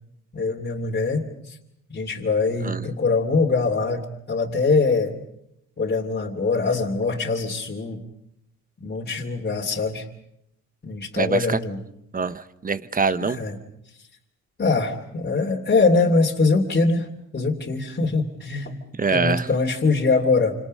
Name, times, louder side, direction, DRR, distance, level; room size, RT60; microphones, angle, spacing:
voice 1, 0.3-1.6 1.9-5.1 5.8-8.0 8.8-10.1 10.8-11.8 13.2-13.6 14.6-17.1 17.3-18.8 19.1-20.5, left 3 dB, 35° left, -1 dB, 3.0 m, -23 dB
voice 2, 11.2-11.6 12.1-13.4 19.0-19.5, right 5 dB, 30° right, 14 dB, 1.1 m, -24 dB
28.0 x 26.5 x 5.5 m, 0.78 s
cardioid pair, 90°, 30 cm